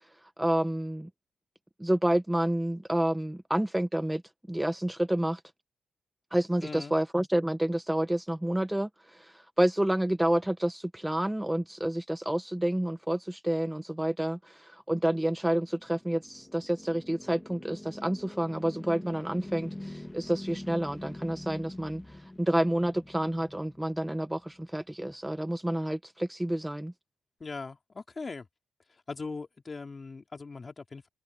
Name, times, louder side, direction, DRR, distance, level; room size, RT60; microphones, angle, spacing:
voice 1, 0.2-1.1 1.8-4.2 4.5-5.4 6.3-26.9, right 1 dB, 5° right, 0.7 m, -29 dB
voice 2, 6.6-6.9 27.4-28.5 28.9-31.1, left 4 dB, 30° left, 2.9 m, -40 dB
sound 1, 15.4-24.6, left 1 dB, 10° left, 1.7 m, -44 dB
cardioid pair, 100°, 0 cm